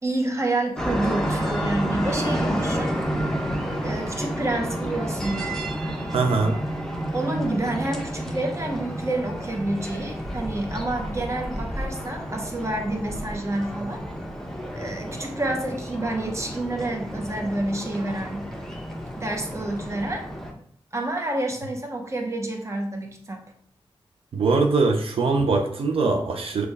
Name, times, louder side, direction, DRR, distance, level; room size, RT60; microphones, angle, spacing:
voice 1, 0.0-2.9 3.8-6.0 7.1-14.0 14.8-18.5 19.2-20.2 20.9-23.4, right 2 dB, 30° right, 2 dB, 0.8 m, -29 dB
sound 1, 0.8-20.5, equal, 5° left, 0.8 m, -30 dB
voice 2, 6.1-6.6 24.3-26.7, right 3 dB, 75° right, 2 dB, 0.5 m, -22 dB
6.1 x 2.3 x 3.3 m, 0.64 s
wide cardioid pair, 85°, 10 cm